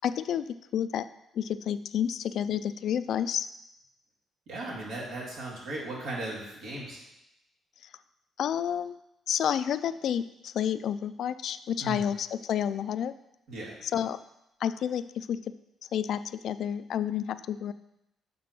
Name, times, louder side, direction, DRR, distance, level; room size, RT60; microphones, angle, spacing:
voice 1, 0.0-0.5 0.7-1.1 1.3-3.5 8.4-9.0 9.3-13.1 13.9-14.2 14.6-15.4 15.9-17.7, left 9 dB, 70° left, 13 dB, 0.3 m, -30 dB
voice 2, 4.5-7.0 11.8-12.0 13.5-13.8, right 2 dB, 85° right, -4 dB, 2.5 m, -37 dB
7.6 x 3.7 x 6.0 m, 0.84 s
cardioid pair, 90°, 0 cm